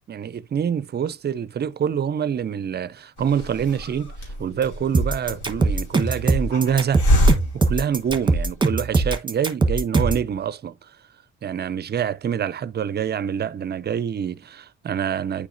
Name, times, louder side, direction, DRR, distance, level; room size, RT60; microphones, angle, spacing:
voice 1, 0.1-4.1 4.4-7.0 7.5-10.8 11.4-15.5, right 8 dB, 35° right, 0.4 m, -26 dB
Hiss, 3.2-8.7, equal, 80° left, 3.8 m, -26 dB
sound 1, 4.9-10.3, right 3 dB, 15° right, 1.1 m, -21 dB
9.8 x 4.0 x 2.5 m
cardioid pair, 90°, 30 cm